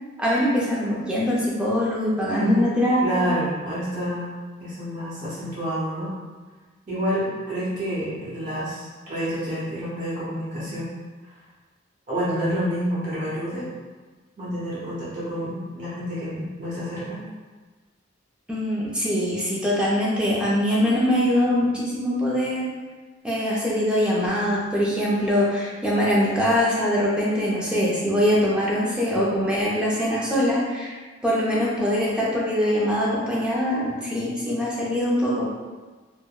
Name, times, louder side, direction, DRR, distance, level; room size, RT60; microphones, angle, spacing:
voice 1, 0.2-3.3 18.5-22.7 23.2-30.9 31.2-35.5, equal, 5° right, -6 dB, 0.4 m, -23 dB
voice 2, 2.4-2.8 3.0-4.3 4.6-6.1 6.9-10.9 12.1-13.7 14.4-17.2, equal, 40° right, -11 dB, 0.9 m, -28 dB
3.4 x 2.1 x 2.3 m, 1.4 s
head